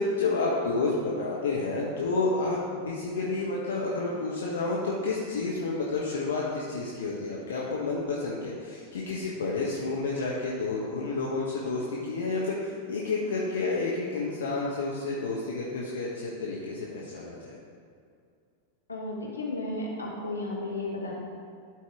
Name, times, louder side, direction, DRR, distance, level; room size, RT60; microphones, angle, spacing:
voice 1, 0.0-17.6, left 3 dB, 65° left, -3 dB, 0.9 m, -30 dB
voice 2, 18.9-21.1, left 2 dB, 80° left, -4 dB, 1.6 m, -33 dB
12.0 x 4.7 x 3.5 m, 2.3 s
figure-of-eight pair, 90°, 0 cm